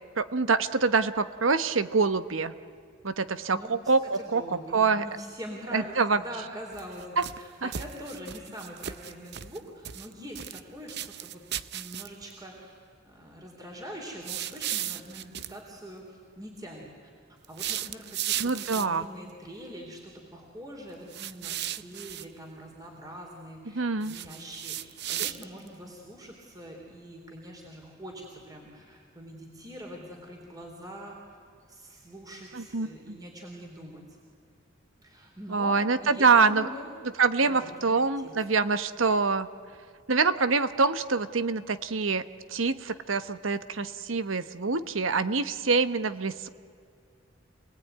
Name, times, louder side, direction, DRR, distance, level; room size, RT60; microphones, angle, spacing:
voice 1, 0.2-2.5 3.0-4.4 4.7-5.0 5.7-6.2 7.2-7.3 7.6-7.7 18.4-19.0 23.7-24.2 32.5-33.2 35.5-36.7 37.2-39.5 40.1-42.2 42.5-46.5, right 4 dB, 85° right, 12 dB, 1.1 m, -25 dB
voice 2, 3.5-12.7 13.0-17.1 17.5-31.4 31.7-34.0 35.0-35.7 36.0-36.9 37.4-38.3, equal, 20° right, -1 dB, 3.7 m, -44 dB
sound 1, 6.7-7.4 7.7-9.6 9.8-10.6 10.9-12.3 14.2-15.5 17.4-19.0 21.1-22.3 24.0-25.7, right 11 dB, 60° right, 0.7 m, -35 dB
28.0 x 19.0 x 9.4 m, 2.2 s
head